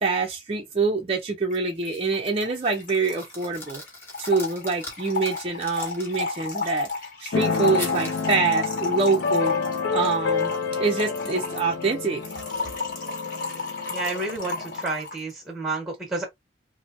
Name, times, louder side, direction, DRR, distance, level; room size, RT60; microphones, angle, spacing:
voice 1, 0.0-3.8 4.2-6.9 7.2-9.6 9.9-12.4, right 4 dB, 30° right, 0.5 m, -25 dB
Trickle dribble / Fill (with liquid), 1.5-1.6 1.8-1.9 2.1-15.2, left 3 dB, 45° left, 1.1 m, -32 dB
sound 1, 1.9-2.2 2.6-6.8 7.8-8.4, left 1 dB, 15° left, 1.0 m, -41 dB
Keyboard (musical), 7.3-14.8, left 4 dB, 75° left, 0.5 m, -29 dB
voice 2, 13.9-16.3, right 3 dB, 5° right, 1.1 m, -30 dB
3.2 x 2.1 x 2.5 m
head